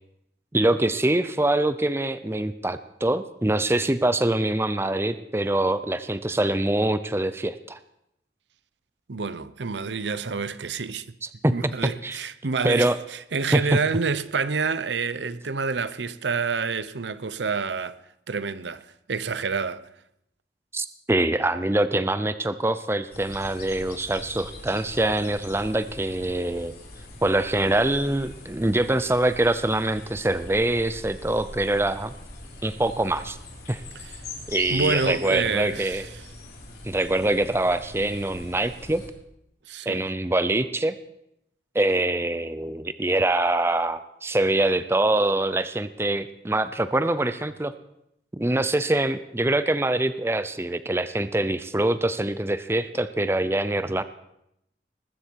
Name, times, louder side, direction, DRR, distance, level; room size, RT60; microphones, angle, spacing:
voice 1, 0.5-7.8 11.4-11.5 12.0-12.2 12.6-13.0 13.5-13.7 20.7-26.7 27.2-32.1 32.6-33.4 33.7-33.8 34.5-36.1 36.8-39.0 39.9-40.9 41.7-47.7 48.3-54.0, right 1 dB, 15° right, 0.6 m, -24 dB
voice 2, 9.1-11.1 11.5-18.0 18.3-18.8 19.1-19.8 33.9-34.2 34.7-36.2 39.7-40.1, right 4 dB, 85° right, 0.8 m, -28 dB
sound 1, 23.1-39.1, left 2 dB, 60° left, 3.9 m, -42 dB
20.0 x 14.5 x 4.7 m
head